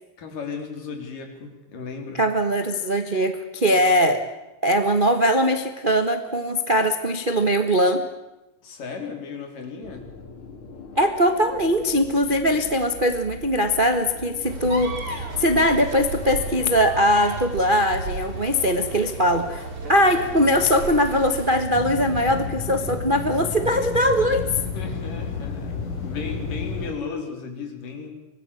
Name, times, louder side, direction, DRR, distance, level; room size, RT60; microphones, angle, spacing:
voice 1, 0.2-2.3 8.6-10.1 18.3-18.6 24.4-28.1, left 5 dB, 90° left, 4 dB, 5.3 m, -35 dB
voice 2, 2.1-4.2 4.6-8.0 11.0-24.5, equal, 90° right, 7 dB, 0.4 m, -21 dB
sound 1, 9.8-16.5, left 4 dB, 45° left, 2.9 m, -42 dB
sound 2, 14.4-21.7, right 2 dB, 50° right, 5.2 m, -33 dB
sound 3, 21.7-26.9, left 5 dB, 70° left, 5.6 m, -31 dB
25.0 x 20.0 x 8.4 m, 1.0 s
omnidirectional pair, 3.7 m